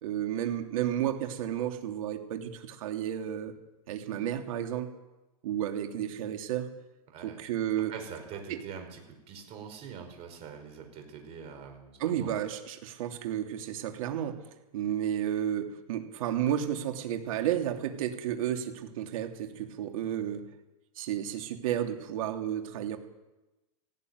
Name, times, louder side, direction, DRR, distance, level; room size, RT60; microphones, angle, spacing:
voice 1, 0.0-3.5 3.9-4.9 5.4-6.7 7.2-7.9 8.5-8.6 12.0-14.4 14.7-20.4 20.9-23.0, right 10 dB, 65° right, 4 dB, 3.1 m, -32 dB
voice 2, 7.1-7.4 7.9-12.4, right 7 dB, 30° right, 4 dB, 5.3 m, -44 dB
18.0 x 16.5 x 9.6 m, 1.0 s
supercardioid pair, 155°, 19 cm